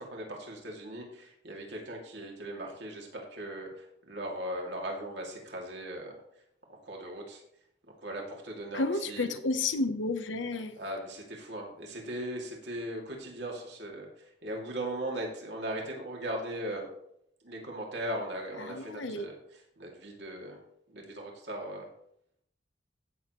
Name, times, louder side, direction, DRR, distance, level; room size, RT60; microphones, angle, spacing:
voice 1, 0.0-6.2 6.7-7.4 7.9-9.4 10.5-16.9 17.4-20.6 20.9-21.9, right 1 dB, 65° right, -1 dB, 2.6 m, -39 dB
voice 2, 8.7-10.8 18.6-19.3, left 3 dB, 85° left, 8 dB, 0.9 m, -31 dB
16.0 x 6.9 x 3.1 m, 0.72 s
head